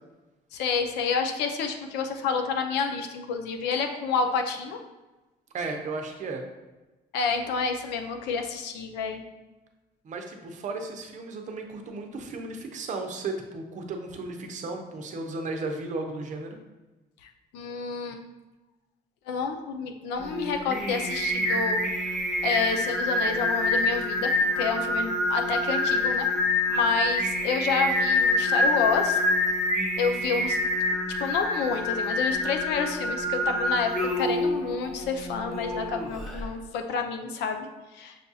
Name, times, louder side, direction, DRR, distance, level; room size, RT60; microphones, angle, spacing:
voice 1, 0.5-4.8 7.1-9.2 17.2-18.2 19.3-26.3 26.7-29.2 30.0-30.6 31.2-38.2, left 5 dB, 85° left, 5 dB, 0.5 m, -29 dB
voice 2, 5.5-6.4 10.0-16.6, right 3 dB, 45° right, 4 dB, 0.6 m, -34 dB
Singing, 20.2-36.5, left 1 dB, ahead, 0.7 m, -26 dB
6.3 x 2.3 x 2.7 m, 1.1 s
cardioid pair, 110°, 17 cm